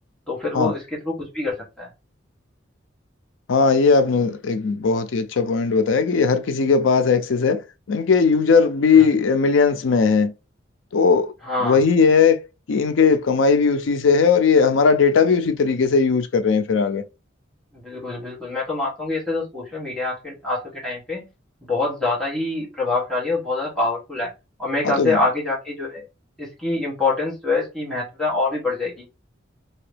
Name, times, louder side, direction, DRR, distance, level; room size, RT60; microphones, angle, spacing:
voice 1, 0.3-1.9 8.9-9.1 11.4-11.8 17.7-21.3 21.6-24.3 24.6-26.1 26.4-29.1, left 3 dB, 5° left, 1.3 m, -25 dB
voice 2, 3.5-10.3 10.9-11.3 11.6-12.4 12.7-17.0 24.8-25.2, left 5 dB, 80° left, 0.4 m, -18 dB
2.9 x 2.8 x 3.3 m
head